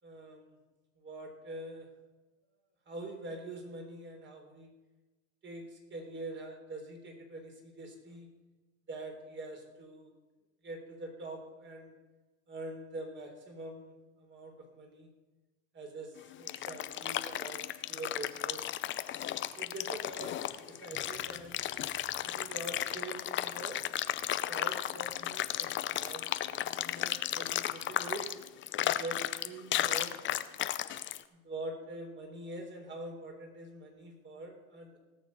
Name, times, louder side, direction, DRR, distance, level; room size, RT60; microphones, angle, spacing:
voice 1, 0.0-0.6 1.0-1.9 2.9-4.7 5.4-8.3 8.9-10.1 10.6-11.9 12.5-15.1 15.7-18.7 19.6-21.7 22.2-23.8 24.5-28.3 28.8-30.3 31.3-35.0, right 2 dB, 30° right, 3 dB, 3.5 m, -44 dB
sound 1, 16.2-31.2, left 12 dB, 30° left, 0.6 m, -34 dB
17.5 x 6.7 x 5.4 m, 1.2 s
hypercardioid pair, 95°, 38 cm